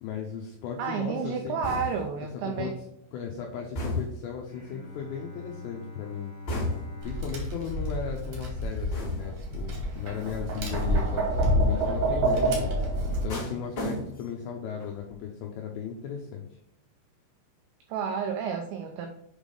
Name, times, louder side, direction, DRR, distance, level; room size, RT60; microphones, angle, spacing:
voice 1, 0.0-1.8 2.4-2.7 3.1-6.3 7.0-12.7 13.0-16.4, left 7 dB, 85° left, 0 dB, 2.5 m, -36 dB
voice 2, 0.8-2.7 17.9-19.1, right 6 dB, 90° right, 4 dB, 2.5 m, -31 dB
sound 1, 1.6-2.2 3.7-4.3 6.5-7.1 8.9-9.5 10.7-11.1 13.3-14.4 14.8-15.2, left 1 dB, 45° left, 1.2 m, -34 dB
Bowed string instrument, 4.5-9.7, left 3 dB, 5° left, 1.2 m, -45 dB
Tap, 7.0-13.2, right 1 dB, 60° right, 1.8 m, -27 dB
8.1 x 3.5 x 5.4 m, 0.75 s
omnidirectional pair, 6.0 m